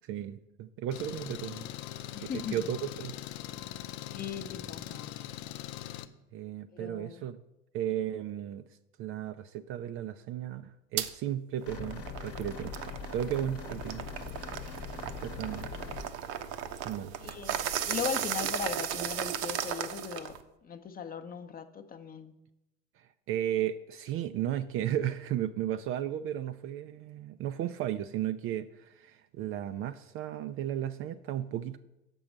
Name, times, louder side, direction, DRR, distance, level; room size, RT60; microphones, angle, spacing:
voice 1, 0.0-1.7 2.2-3.1 6.3-7.4 7.7-8.6 9.0-12.7 13.1-14.1 15.2-15.7 16.8-17.1 23.0-31.8, right 11 dB, 40° right, 11 dB, 0.4 m, -34 dB
Engine, 0.9-6.1, left 12 dB, 60° left, 0.6 m, -41 dB
voice 2, 2.1-2.6 4.1-5.1 6.7-7.2 17.2-20.4 20.6-22.3, left 7 dB, 25° left, 9 dB, 0.7 m, -38 dB
sound 1, 11.0-11.1 11.6-20.4, right 9 dB, 60° right, 0.8 m, -36 dB
sound 2, 11.7-16.1, left 7 dB, 40° left, 1.0 m, -42 dB
6.8 x 5.3 x 7.2 m, 0.92 s
hypercardioid pair, 80°, 37 cm